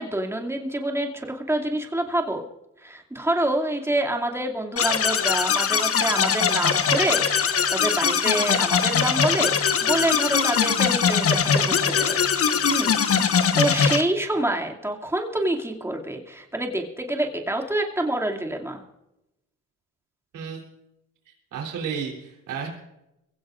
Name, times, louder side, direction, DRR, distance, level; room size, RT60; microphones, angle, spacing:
voice 1, 0.0-2.4 2.8-12.2 12.7-12.9 13.5-18.8, right 1 dB, 10° right, 1 dB, 2.5 m, -27 dB
sound 1, 4.8-14.0, left 7 dB, 50° left, 1.2 m, -21 dB
voice 2, 21.5-22.7, right 6 dB, 80° right, -1 dB, 3.6 m, -32 dB
23.0 x 16.5 x 2.6 m, 0.90 s
cardioid pair, 90°, 30 cm